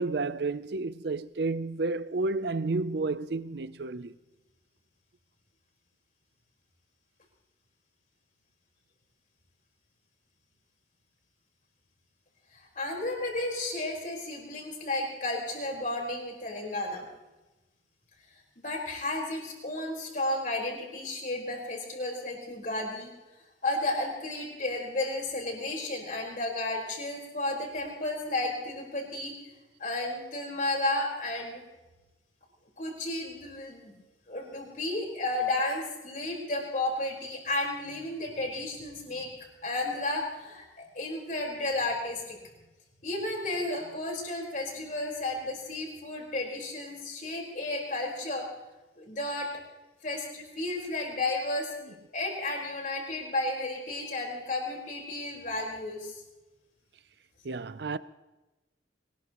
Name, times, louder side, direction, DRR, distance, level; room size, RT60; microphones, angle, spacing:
voice 1, 0.0-4.1 51.8-51.9 57.4-58.0, right 3 dB, 60° right, 0.6 m, -31 dB
voice 2, 12.5-17.0 18.6-23.1 23.6-29.3 29.8-31.6 32.8-33.9 34.3-39.3 39.6-42.4 43.0-48.5 49.0-49.5 50.0-56.2, left 2 dB, 45° left, 4.7 m, -33 dB
23.0 x 20.0 x 3.1 m
head